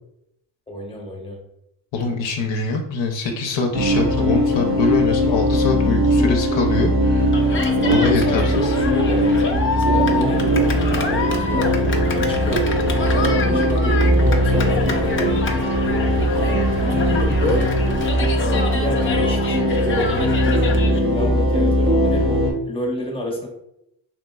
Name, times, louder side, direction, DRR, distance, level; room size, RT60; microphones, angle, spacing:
voice 1, 0.7-1.4 7.8-9.3 9.7-10.8 11.0-11.7 12.2-12.7 13.1-15.6 16.4-17.7 18.4-23.5, left 1 dB, 10° left, -1 dB, 0.8 m, -28 dB
voice 2, 1.9-7.3 7.9-8.7, left 3 dB, 70° left, 2 dB, 0.6 m, -23 dB
sound 1, 3.7-22.5, equal, 25° right, 0.8 m, -19 dB
sound 2, 6.1-20.4, right 2 dB, 60° right, 0.7 m, -33 dB
Cheering, 7.3-21.0, left 4 dB, 30° left, 0.4 m, -28 dB
3.0 x 3.0 x 2.2 m, 0.80 s
cardioid pair, 90°, 46 cm